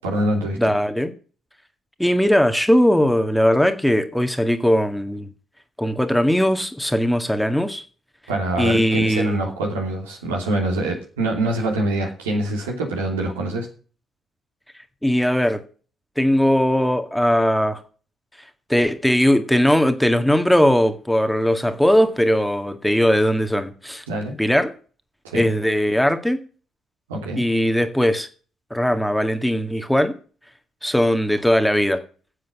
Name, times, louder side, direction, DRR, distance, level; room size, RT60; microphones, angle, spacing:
voice 1, 0.0-0.7 8.3-13.7 24.1-24.4 25.2-25.4 27.1-27.5, right 1 dB, 85° right, 3.0 m, -24 dB
voice 2, 0.6-1.1 2.0-5.3 5.8-7.8 8.6-9.4 15.0-15.6 16.2-17.8 18.7-24.0 24.4-24.7 25.3-26.4 27.4-28.3 28.7-30.1 30.8-32.0, equal, 5° left, 1.7 m, -19 dB
9.8 x 7.6 x 7.0 m
hypercardioid pair, 45°, 0 cm